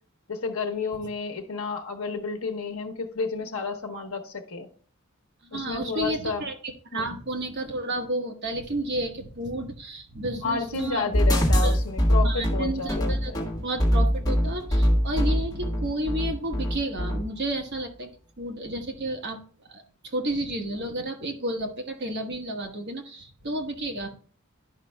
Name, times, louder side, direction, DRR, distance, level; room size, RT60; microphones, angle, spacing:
voice 1, 0.3-4.7 5.5-6.5 6.9-7.2 10.4-13.4 14.0-14.1, left 4 dB, 75° left, 4 dB, 1.0 m, -31 dB
voice 2, 5.4-11.1 11.6-11.8 12.2-18.1 18.4-19.4 19.7-24.1, right 1 dB, 50° right, 3 dB, 1.2 m, -32 dB
sound 1, 11.1-17.2, equal, 20° left, 1.5 m, -23 dB
11.5 x 5.2 x 2.3 m, 0.43 s
head